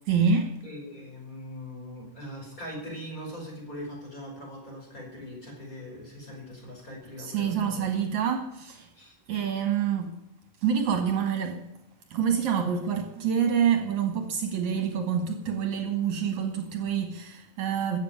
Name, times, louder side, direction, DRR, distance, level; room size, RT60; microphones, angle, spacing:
voice 1, 0.1-0.5 7.2-8.9 9.3-10.2 10.6-11.6 12.1-18.0, right 7 dB, 65° right, 2.6 m, -27 dB
voice 2, 0.6-7.9 9.0-9.1, equal, 25° left, 5.3 m, -41 dB
14.5 x 7.7 x 9.5 m
omnidirectional pair, 3.7 m